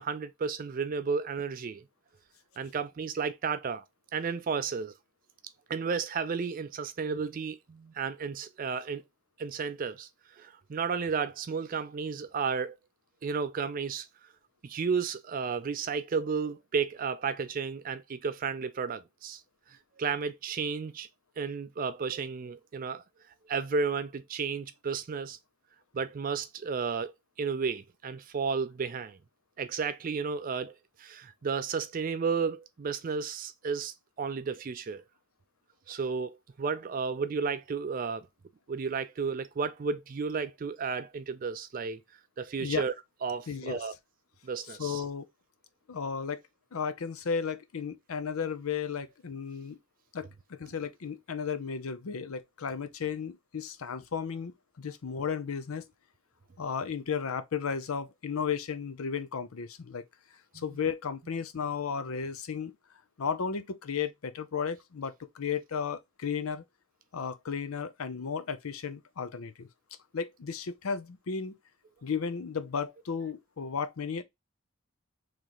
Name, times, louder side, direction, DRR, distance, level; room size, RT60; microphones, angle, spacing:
voice 1, 0.0-1.8 2.6-3.8 4.1-4.9 5.7-9.0 9.4-12.8 13.2-14.1 14.6-19.4 20.0-21.1 21.4-23.0 23.5-25.4 25.9-27.1 27.4-29.2 29.6-35.0 35.9-38.3 38.7-42.0 42.4-42.9 43.2-43.9 44.4-45.0 60.5-60.6, right 5 dB, 40° right, 0.4 m, -33 dB
voice 2, 43.5-43.8 44.7-45.3 45.9-46.4 46.7-49.8 50.1-55.9 56.6-60.0 60.5-62.8 63.2-66.6 67.1-69.7 70.1-71.6 72.0-74.2, left 6 dB, 80° left, 0.6 m, -34 dB
3.2 x 3.0 x 3.8 m
head